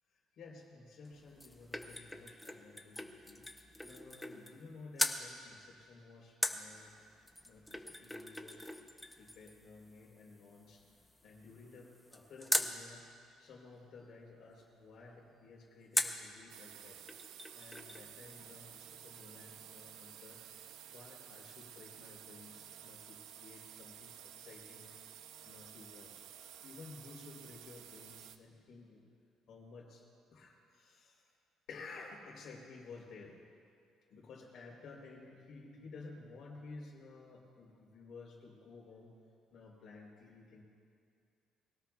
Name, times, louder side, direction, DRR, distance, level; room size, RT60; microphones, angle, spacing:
voice 1, 0.1-3.5 3.8-6.9 7.4-8.7 9.2-10.8 11.2-13.1 13.4-17.0 17.5-20.4 20.9-24.9 25.4-26.3 26.6-29.0 29.5-30.0 30.3-31.3 31.7-33.4 34.1-39.2 39.5-40.6, left 3 dB, 50° left, -2 dB, 3.8 m, -54 dB
sound 1, 1.0-4.7 5.0-5.2 6.4-12.8 15.9-16.3 16.8-16.9 17.1-18.1 18.3-18.4, left 1 dB, 5° left, 0.6 m, -40 dB
sound 2, 16.5-28.4, right 10 dB, 85° right, 0.6 m, -53 dB
23.0 x 17.5 x 2.4 m, 2.3 s
cardioid pair, 175°, 0 cm